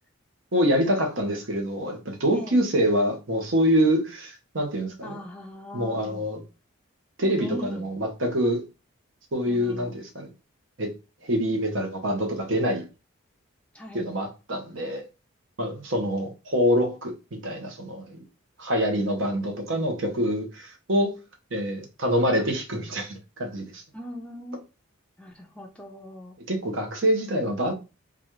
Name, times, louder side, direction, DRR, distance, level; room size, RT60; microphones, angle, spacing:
voice 1, 0.5-5.2 5.7-6.4 7.2-8.7 9.3-10.3 10.8-10.9 11.2-12.9 13.9-15.1 15.6-18.2 18.6-21.2 21.5-23.8 26.5-27.7, equal, 60° right, 0.9 m, -25 dB
voice 2, 5.0-6.3 7.4-7.8 9.5-10.0 13.7-14.1 23.9-24.6 25.2-26.3, equal, 5° left, 0.4 m, -39 dB
3.9 x 2.4 x 3.1 m
head